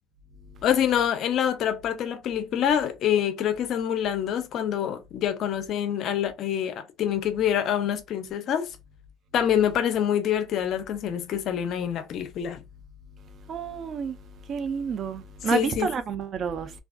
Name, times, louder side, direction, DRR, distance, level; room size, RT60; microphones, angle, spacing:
voice 1, 0.6-8.7 9.3-12.6 15.5-15.9, left 9 dB, 60° left, 0.5 m, -26 dB
voice 2, 13.5-14.2 14.5-16.7, right 6 dB, 50° right, 0.4 m, -29 dB
2.3 x 2.3 x 2.4 m
supercardioid pair, 80°, 0 cm